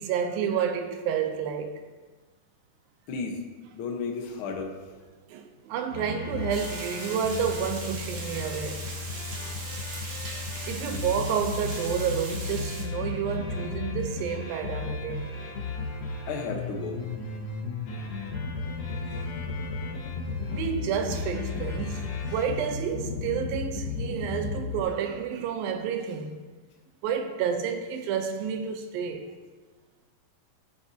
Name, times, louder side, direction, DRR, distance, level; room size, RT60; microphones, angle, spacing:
voice 1, 0.0-1.7 5.3-8.9 10.6-15.4 19.1-19.3 20.5-22.0 22.3-26.4 27.0-29.3, right 7 dB, 90° right, 2.6 m, -30 dB
voice 2, 3.1-3.4 3.7-4.7 10.5-10.6 16.3-17.0, left 4 dB, 75° left, 1.2 m, -33 dB
sound 1, 5.9-24.8, left 4 dB, 55° left, 2.0 m, -34 dB
Water, 6.5-12.8, right 3 dB, 50° right, 2.0 m, -39 dB
16.0 x 7.6 x 2.8 m
omnidirectional pair, 4.0 m